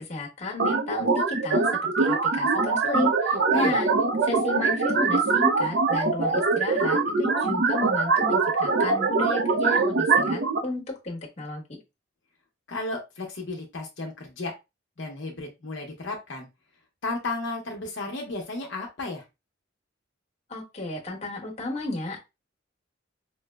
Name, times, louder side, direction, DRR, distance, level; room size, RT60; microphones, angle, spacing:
voice 1, 0.0-3.9 4.2-11.8 20.5-22.2, left 2 dB, 35° left, -1 dB, 1.0 m, -33 dB
sound 1, 0.6-10.6, right 4 dB, 55° right, 0.5 m, -23 dB
voice 2, 12.7-14.5 15.0-16.5 17.0-19.2, left 2 dB, 65° left, 0 dB, 0.7 m, -33 dB
4.5 x 2.0 x 2.2 m, 0.24 s
head